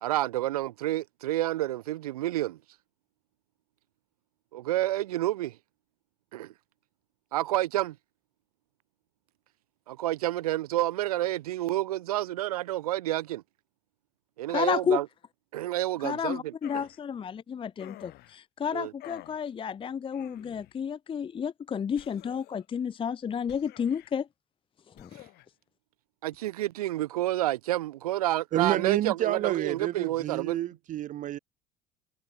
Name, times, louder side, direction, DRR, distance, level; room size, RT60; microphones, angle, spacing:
voice 1, 0.0-2.6 4.5-5.6 6.3-6.5 7.3-8.0 9.9-13.4 14.4-15.1 15.5-16.5 18.7-18.9 26.2-30.6, right 15 dB, 75° right, 1.3 m, -29 dB
voice 2, 14.5-15.0 16.0-24.3 25.0-25.1, left 7 dB, 25° left, 0.7 m, -31 dB
sound 1, 16.6-17.0 17.8-18.4 19.0-19.4 20.1-20.8 22.0-22.7 23.5-24.1 25.0-25.5, left 18 dB, 55° left, 2.4 m, -49 dB
voice 3, 28.5-31.4, right 12 dB, 45° right, 0.7 m, -29 dB
figure-of-eight pair, 60°, 19 cm